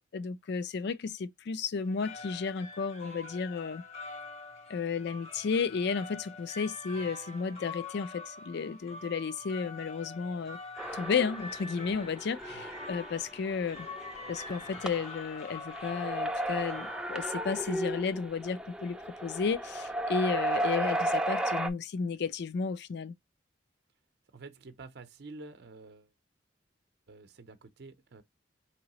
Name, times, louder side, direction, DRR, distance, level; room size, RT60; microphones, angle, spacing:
voice 1, 0.1-3.8 4.7-10.6 10.9-13.9 14.3-19.0 19.2-23.1, left 5 dB, 60° left, 0.4 m, -33 dB
sound 1, 1.8-17.7, left 3 dB, 35° left, 0.7 m, -46 dB
sound 2, 10.8-21.7, right 1 dB, 5° right, 0.4 m, -35 dB
voice 2, 24.3-26.1 27.1-28.2, right 3 dB, 60° right, 0.6 m, -49 dB
4.6 x 3.0 x 2.9 m
head